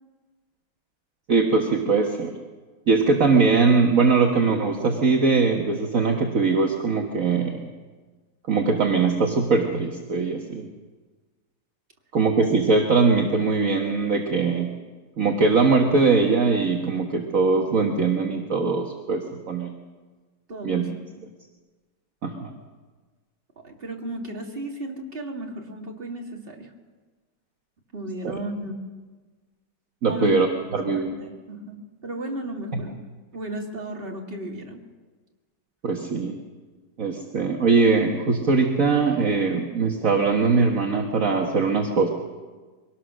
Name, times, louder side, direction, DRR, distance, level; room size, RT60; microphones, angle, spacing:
voice 1, 1.3-2.3 2.9-7.7 8.5-10.7 12.1-14.7 15.2-19.8 20.6-20.9 22.2-22.6 28.2-28.3 30.0-30.5 30.7-31.1 35.8-36.4 37.0-42.1, right 4 dB, 50° right, 2 dB, 1.7 m, -21 dB
voice 2, 20.5-20.9 23.6-26.7 27.9-28.8 30.1-30.3 30.7-33.0 33.3-34.8, right 1 dB, 30° right, 1 dB, 2.5 m, -34 dB
23.5 x 18.5 x 6.3 m, 1.4 s
omnidirectional pair, 1.9 m